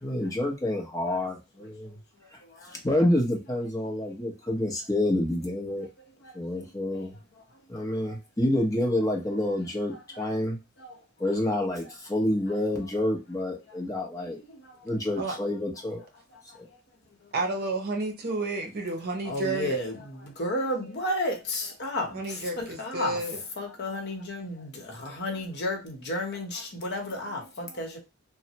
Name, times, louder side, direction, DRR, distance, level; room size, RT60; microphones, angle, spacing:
voice 1, 0.0-2.0 2.8-5.9 6.3-7.2 7.7-10.6 11.2-14.4 14.8-16.0, left 1 dB, 15° left, 0.8 m, -28 dB
voice 2, 9.9-10.3 10.8-10.9 14.6-14.7 19.2-23.2 23.6-28.0, left 1 dB, 55° left, 0.9 m, -32 dB
voice 3, 17.3-19.8 22.1-23.4, right 3 dB, 50° right, 0.7 m, -31 dB
3.1 x 2.1 x 2.8 m
head